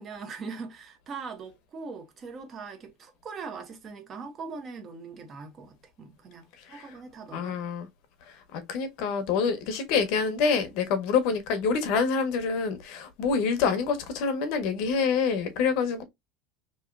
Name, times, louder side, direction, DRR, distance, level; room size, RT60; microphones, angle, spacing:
voice 1, 0.0-7.7, right 4 dB, 35° right, 0.9 m, -41 dB
voice 2, 7.3-7.9 8.5-16.0, left 5 dB, 65° left, 0.7 m, -26 dB
3.0 x 2.8 x 2.4 m
supercardioid pair, 130°, 0 cm